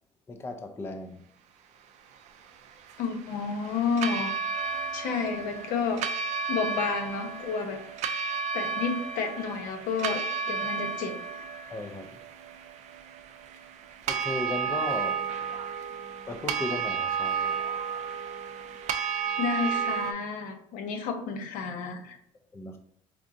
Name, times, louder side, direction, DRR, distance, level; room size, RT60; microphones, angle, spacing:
voice 1, 0.3-1.2 11.7-12.2 14.1-15.2 16.3-17.6 22.5-22.8, left 2 dB, 15° left, 0.3 m, -36 dB
sound 1, 2.1-20.1, right 6 dB, 55° right, 0.4 m, -33 dB
voice 2, 3.0-4.3 4.9-6.0 6.5-7.8 8.5-10.2 10.5-11.1 19.4-22.2, left 5 dB, 70° left, 0.7 m, -30 dB
4.4 x 2.5 x 2.5 m
cardioid pair, 110°, 15 cm